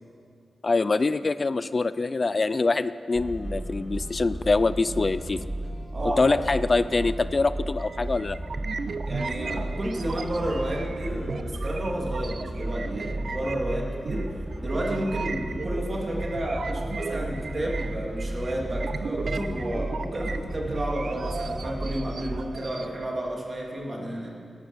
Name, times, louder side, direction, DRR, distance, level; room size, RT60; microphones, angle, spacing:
voice 1, 0.6-5.4 6.2-8.4, left 3 dB, 35° left, 15 dB, 0.4 m, -24 dB
sound 1, 3.1-22.4, right 1 dB, 25° right, 1.9 m, -34 dB
voice 2, 5.9-6.4 9.0-14.3 14.6-24.3, right 1 dB, 40° right, -2 dB, 2.9 m, -31 dB
sound 2, 7.8-22.9, right 4 dB, 60° right, 0.6 m, -37 dB
18.5 x 12.0 x 6.3 m, 2.5 s
wide cardioid pair, 100°, 0 cm